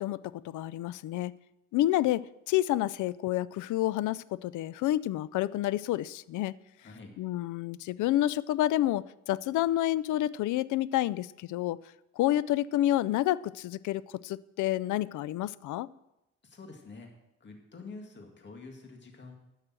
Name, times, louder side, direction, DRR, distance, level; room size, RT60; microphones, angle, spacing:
voice 1, 0.0-1.3 1.7-6.5 7.2-11.8 12.2-15.9, left 14 dB, 80° left, 20 dB, 0.5 m, -29 dB
voice 2, 6.8-7.1 16.4-17.1 17.4-19.4, left 3 dB, 35° left, 3 dB, 2.1 m, -47 dB
10.5 x 6.7 x 7.5 m, 0.90 s
cardioid pair, 90°, 30 cm